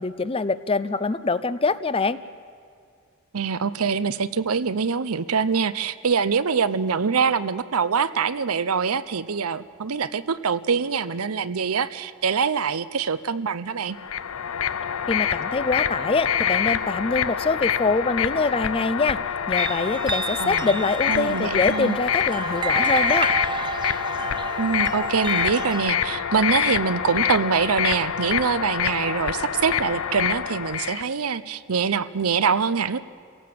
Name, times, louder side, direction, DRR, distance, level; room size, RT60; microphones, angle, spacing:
voice 1, 0.0-2.2 15.1-19.2 19.5-23.4, left 3 dB, 25° left, 14 dB, 0.5 m, -24 dB
voice 2, 3.3-14.0 20.4-20.7 21.1-22.0 24.6-33.0, right 6 dB, 80° right, 14 dB, 0.7 m, -24 dB
sound 1, 13.9-31.0, left 8 dB, 70° left, 0.7 m, -26 dB
sound 2, 19.6-25.8, right 4 dB, 20° right, 0.5 m, -31 dB
28.0 x 17.5 x 7.7 m, 2.2 s
head